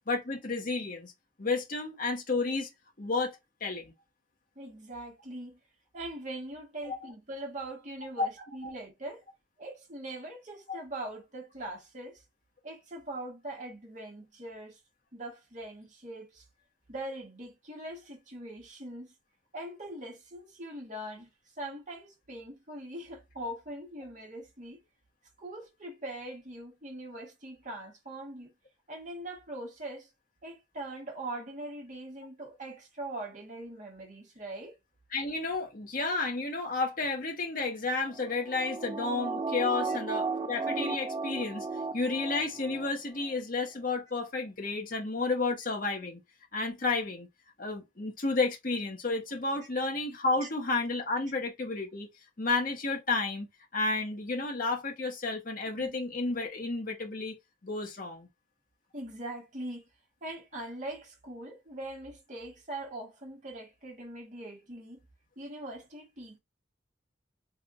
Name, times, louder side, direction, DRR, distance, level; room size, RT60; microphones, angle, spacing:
voice 1, 0.1-1.1 1.4-2.7 3.0-3.9 6.8-7.0 8.2-8.3 8.6-8.7 10.7-10.8 35.1-41.7 41.9-46.2 46.5-47.3 47.6-52.1 52.4-57.3 57.6-58.3, left 3 dB, 45° left, 1.3 m, -31 dB
voice 2, 4.5-5.6 5.9-9.2 9.6-12.2 12.6-14.8 15.1-16.4 16.9-19.1 19.5-21.3 21.6-24.8 25.4-28.5 28.9-30.1 30.4-34.7 50.4-50.5 55.7-56.0 58.9-59.8 60.2-65.0 65.4-66.4, right 1 dB, 40° right, 1.4 m, -42 dB
sound 1, 38.1-42.9 43.2-43.3, right 3 dB, 20° right, 0.4 m, -35 dB
3.6 x 3.4 x 2.5 m
head